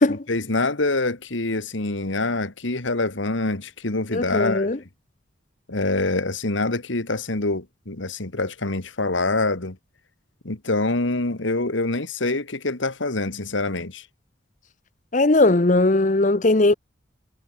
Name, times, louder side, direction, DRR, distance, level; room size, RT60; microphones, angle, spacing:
voice 1, 0.1-4.7 5.7-9.8 10.4-14.1, left 2 dB, 75° left, 2.0 m, -25 dB
voice 2, 4.1-4.8 15.1-16.7, left 2 dB, 40° left, 0.8 m, -18 dB
head